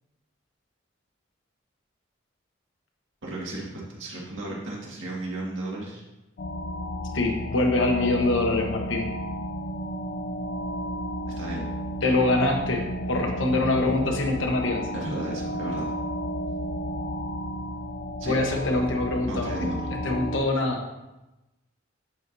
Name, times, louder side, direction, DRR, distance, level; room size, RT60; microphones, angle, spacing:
voice 1, 3.2-6.0 11.3-11.6 14.9-15.9 18.2-18.4 19.2-19.9, right 1 dB, 85° right, -3 dB, 1.9 m, -34 dB
sound 1, 6.4-20.4, equal, 50° left, 0.4 m, -32 dB
voice 2, 7.1-9.1 12.0-12.8 13.1-14.8 18.2-19.7 20.0-20.8, left 2 dB, 85° left, 2 dB, 1.1 m, -24 dB
10.5 x 4.6 x 2.7 m, 0.99 s
head